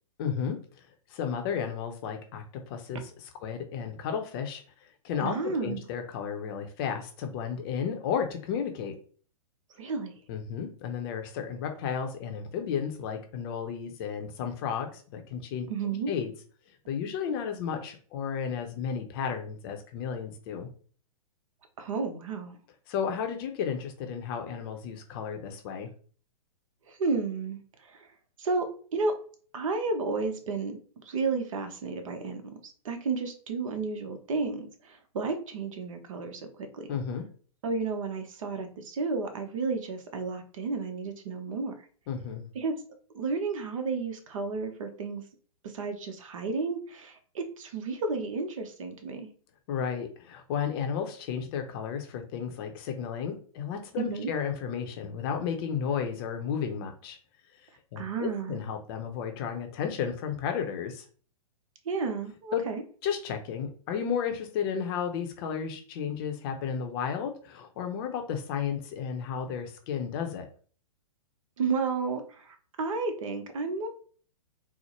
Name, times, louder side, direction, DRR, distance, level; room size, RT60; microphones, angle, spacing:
voice 1, 0.2-0.6 1.1-9.0 10.3-15.7 16.1-16.3 16.9-20.7 22.9-25.9 36.9-37.3 42.1-42.5 49.7-57.2 57.9-61.0 62.5-62.6 63.0-70.4, left 7 dB, 40° left, 5 dB, 0.6 m, -33 dB
voice 2, 5.2-5.9 9.8-10.1 15.7-16.1 21.8-22.6 26.9-27.6 27.9-28.1 28.4-29.1 29.5-30.8 31.0-36.9 37.6-41.7 42.5-42.7 43.1-45.2 45.6-49.3 54.0-54.3 58.0-58.6 61.8-62.8 71.6-73.9, right 4 dB, 60° right, 7 dB, 0.8 m, -32 dB
4.3 x 2.1 x 2.9 m, 0.42 s
hypercardioid pair, 120°, 19 cm